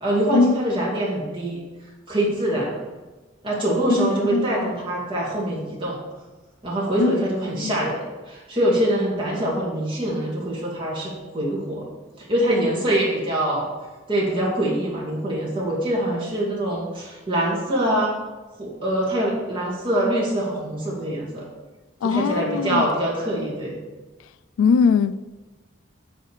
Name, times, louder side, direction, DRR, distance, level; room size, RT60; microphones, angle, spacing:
voice 1, 0.0-1.6 2.1-2.8 3.4-6.0 6.6-11.9 12.2-13.7 14.1-18.2 18.6-21.5 22.0-23.8, right 1 dB, 25° right, 2.2 m, -24 dB
voice 2, 3.9-4.7 7.0-7.3 7.6-7.7 22.0-22.9 24.6-25.3, left 5 dB, 85° left, 0.3 m, -21 dB
8.8 x 3.4 x 6.4 m
head